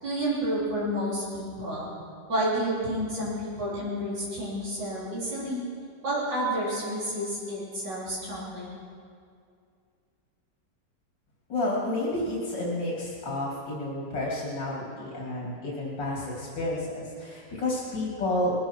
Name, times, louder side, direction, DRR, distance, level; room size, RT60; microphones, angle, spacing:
voice 1, 0.0-1.9 2.3-5.6 6.0-8.7, right 1 dB, 85° right, -9 dB, 4.5 m, -30 dB
voice 2, 11.5-18.5, left 1 dB, 90° left, -4 dB, 3.4 m, -30 dB
20.5 x 14.5 x 4.5 m, 2.3 s
omnidirectional pair, 1.9 m